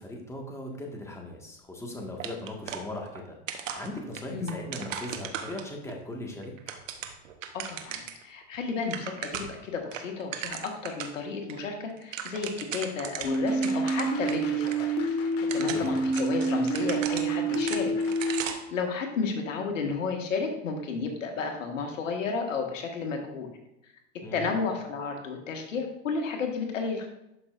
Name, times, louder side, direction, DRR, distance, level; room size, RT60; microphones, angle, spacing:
voice 1, 0.0-6.5 15.7-16.0 24.2-24.5, left 1 dB, 5° left, 0 dB, 1.7 m, -39 dB
sound 1, 2.2-3.2 3.5-5.9 6.4-8.2 8.5-8.6 8.8-9.6 9.9-11.2 11.5-11.6 11.9-14.4 14.7-14.8 15.3-18.7, right 8 dB, 85° right, 1.0 m, -37 dB
voice 2, 7.5-15.0 15.5-17.9 18.2-23.5 24.3-27.1, left 4 dB, 90° left, 3 dB, 1.6 m, -32 dB
sound 2, 13.2-18.4, right 2 dB, 40° left, 1.5 m, -27 dB
11.5 x 5.7 x 2.5 m, 0.86 s
hypercardioid pair, 100°, 37 cm